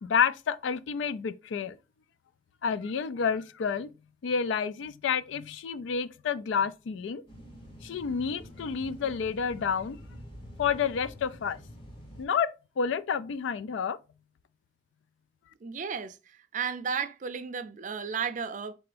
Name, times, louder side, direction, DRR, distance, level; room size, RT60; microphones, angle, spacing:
voice 1, 0.0-1.8 2.6-3.9 4.2-7.2 7.8-10.0 10.6-11.6 12.2-12.5 12.8-14.0, left 6 dB, 80° left, 0.3 m, -29 dB
sound 1, 7.3-12.3, equal, 25° left, 1.0 m, -47 dB
voice 2, 15.6-18.7, right 6 dB, 40° right, 0.4 m, -34 dB
3.9 x 3.4 x 3.3 m
head